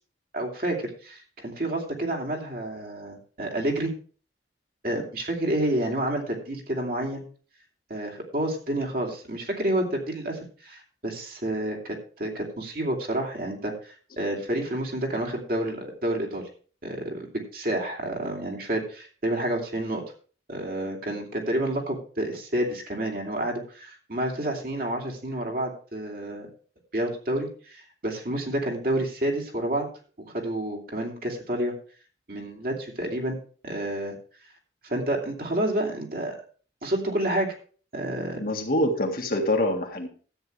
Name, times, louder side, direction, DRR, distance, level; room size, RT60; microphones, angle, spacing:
voice 1, 0.3-3.9 4.8-7.2 7.9-16.5 16.8-17.3 17.5-20.0 20.5-26.5 26.9-29.9 30.3-31.7 32.3-33.4 33.6-34.2 34.8-36.4 36.8-37.5 37.9-38.4, right 1 dB, 50° right, 0 dB, 2.8 m, -29 dB
voice 2, 38.3-40.1, left 1 dB, 50° left, 2 dB, 1.8 m, -25 dB
13.5 x 8.8 x 3.3 m, 0.40 s
head